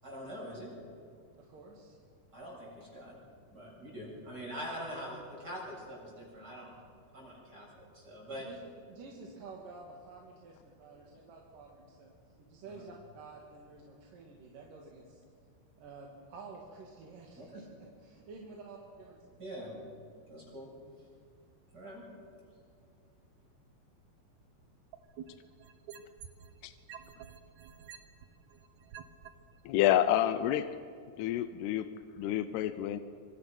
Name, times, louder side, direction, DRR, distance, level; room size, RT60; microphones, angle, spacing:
voice 1, 0.0-0.7 2.3-3.2 3.5-6.7 7.1-8.5 17.4-17.7 19.4-19.7 20.3-20.7 21.7-22.1, equal, 20° right, -3 dB, 7.9 m, -44 dB
voice 2, 1.4-2.0 8.3-8.6 8.9-15.2 15.8-17.7 18.0-19.8, right 4 dB, 55° right, -1 dB, 3.4 m, -51 dB
sound 1, 24.9-26.5 26.9-29.3 29.9-30.0, right 9 dB, 80° right, 1.6 m, -48 dB
voice 3, 29.7-30.7 31.2-31.9 32.2-33.0, left 12 dB, 80° left, 11 dB, 2.6 m, -28 dB
27.0 x 25.5 x 6.0 m, 2.2 s
omnidirectional pair, 4.9 m